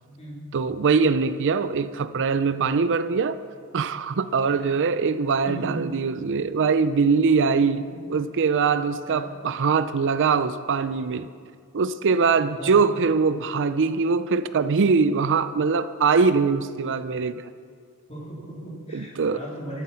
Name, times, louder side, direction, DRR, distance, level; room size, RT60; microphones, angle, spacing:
voice 1, 0.5-3.4 3.7-11.3 11.7-17.5 18.9-19.4, right 5 dB, 55° right, 12 dB, 0.5 m, -22 dB
voice 2, 5.5-6.0 9.0-9.3 12.6-12.8 18.1-19.8, right 1 dB, 30° left, -4 dB, 3.8 m, -37 dB
13.5 x 13.0 x 5.7 m, 2.2 s
head